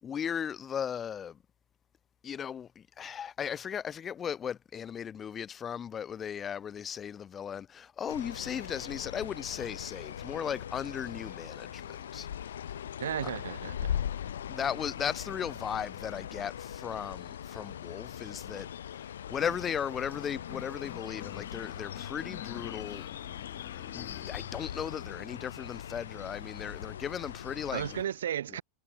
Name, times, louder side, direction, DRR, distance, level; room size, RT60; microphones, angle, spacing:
voice 1, 0.0-1.4 2.2-12.3 12.6-12.7 14.5-18.7 18.9-23.0 23.9-28.0, left 8 dB, 25° left, 4.1 m, -37 dB
sound 1, 8.1-28.0, left 9 dB, 65° left, 1.1 m, -40 dB
voice 2, 13.0-13.9 27.7-28.6, right 10 dB, 65° right, 6.2 m, -34 dB
sound 2, 20.1-25.0, left 40 dB or more, 45° left, 1.8 m, -47 dB
figure-of-eight pair, 90°, 0 cm